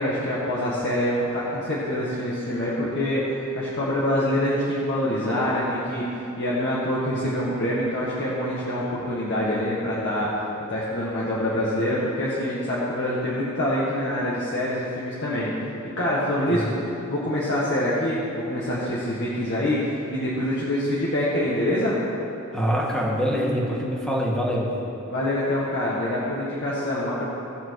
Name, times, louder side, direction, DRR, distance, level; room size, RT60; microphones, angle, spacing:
voice 1, 0.0-10.3 10.7-15.5 16.0-16.8 17.0-22.0 25.1-27.2, left 1 dB, 60° left, -7 dB, 1.7 m, -25 dB
voice 2, 22.5-24.8, equal, 5° left, -4 dB, 1.9 m, -25 dB
17.0 x 7.0 x 4.8 m, 2.9 s
head